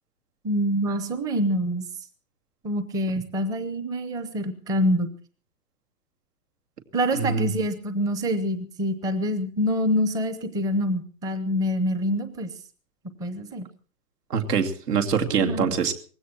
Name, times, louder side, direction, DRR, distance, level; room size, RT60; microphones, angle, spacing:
voice 1, 0.4-1.8 2.6-5.1 6.9-12.5 13.2-13.7 15.3-15.8, equal, 10° right, 12 dB, 0.7 m, -26 dB
voice 2, 7.1-7.5 14.3-15.9, right 6 dB, 80° right, 4 dB, 2.7 m, -24 dB
19.0 x 16.0 x 4.5 m, 0.41 s
hypercardioid pair, 150°, 46 cm